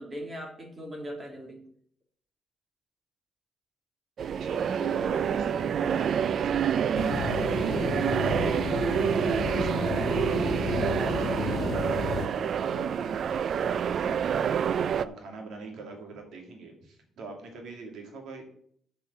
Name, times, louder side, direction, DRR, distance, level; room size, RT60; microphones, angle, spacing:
voice 1, 0.0-1.6 9.7-9.9, equal, 25° right, 1 dB, 3.2 m, -40 dB
sound 1, 4.2-15.1, right 8 dB, 60° right, 0.4 m, -27 dB
voice 2, 4.4-9.0 9.2-14.5 15.0-18.4, right 3 dB, 75° right, 2 dB, 2.8 m, -43 dB
sound 2, 6.9-12.3, left 6 dB, 65° left, 0.8 m, -32 dB
8.5 x 5.6 x 7.0 m, 0.62 s
cardioid pair, 90°, 0 cm